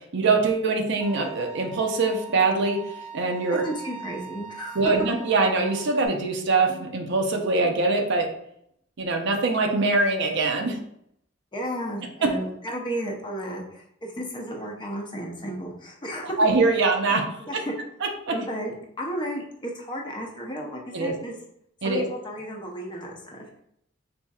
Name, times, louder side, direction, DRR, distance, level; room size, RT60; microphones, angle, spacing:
voice 1, 0.1-2.8 3.1-3.6 4.8-8.3 9.0-10.8 16.4-17.2 17.5-17.6 18.0-18.3 20.9-21.1 21.8-22.0, right 3 dB, 65° right, 3 dB, 0.6 m, -23 dB
Bowed string instrument, 1.0-6.1, right 5 dB, 5° left, 1.1 m, -42 dB
voice 2, 3.5-4.8 11.5-16.3 17.4-17.7 18.3-21.4 21.8-23.4, equal, 25° left, 0 dB, 0.6 m, -33 dB
4.2 x 2.7 x 2.3 m, 0.72 s
head